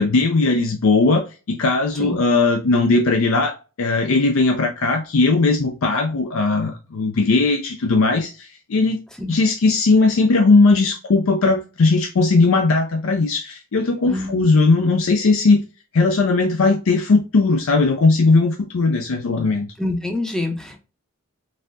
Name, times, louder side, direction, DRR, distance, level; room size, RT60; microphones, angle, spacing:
voice 1, 0.0-9.0 9.3-15.6 15.9-19.7, left 3 dB, 75° left, 0.5 m, -18 dB
voice 2, 14.1-14.5 19.8-20.8, left 2 dB, 5° left, 0.5 m, -26 dB
4.0 x 2.7 x 2.5 m
head